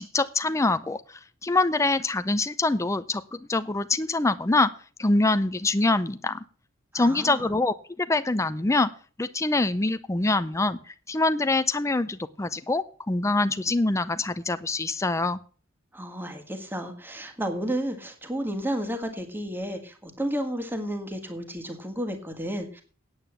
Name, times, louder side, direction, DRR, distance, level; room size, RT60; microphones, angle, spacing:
voice 1, 0.0-4.7 5.0-6.4 6.9-8.9 9.2-15.4, left 2 dB, 15° left, 11 dB, 0.5 m, -25 dB
voice 2, 6.9-7.5 15.9-22.8, equal, 10° right, 6 dB, 1.7 m, -32 dB
9.0 x 8.9 x 7.2 m, 0.40 s
head